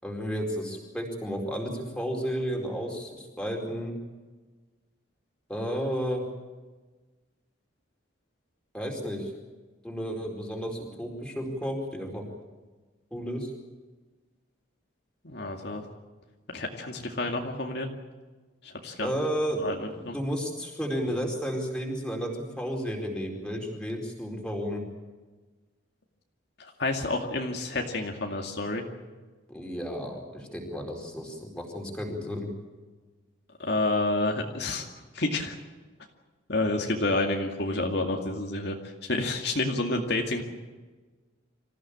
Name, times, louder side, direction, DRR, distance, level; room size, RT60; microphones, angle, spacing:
voice 1, 0.0-4.0 5.5-6.2 8.7-9.3 9.8-12.2 13.1-13.5 19.0-19.6 19.9-22.3 22.6-24.9 29.5-32.5, equal, 5° left, 0 dB, 4.4 m, -32 dB
voice 2, 15.2-15.8 16.5-17.9 18.6-19.1 19.6-20.2 26.6-28.8 33.6-34.9 35.1-35.6 36.5-40.4, left 2 dB, 55° left, 2 dB, 2.2 m, -29 dB
26.5 x 15.5 x 8.7 m, 1.3 s
head